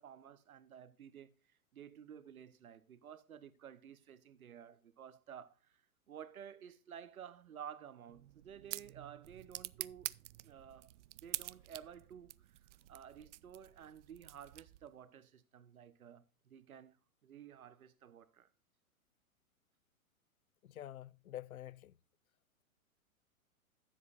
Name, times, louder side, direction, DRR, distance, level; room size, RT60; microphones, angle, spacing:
voice 1, 0.0-1.3 1.7-5.8 6.1-10.1 10.4-10.9 11.2-12.6 12.9-17.0 17.2-18.5, right 9 dB, 80° right, 1.1 m, -53 dB
sound 1, 8.1-15.0, right 15 dB, 60° right, 0.5 m, -48 dB
voice 2, 20.7-21.9, left 12 dB, 80° left, 0.6 m, -47 dB
13.5 x 7.6 x 2.5 m
hypercardioid pair, 115°, 43 cm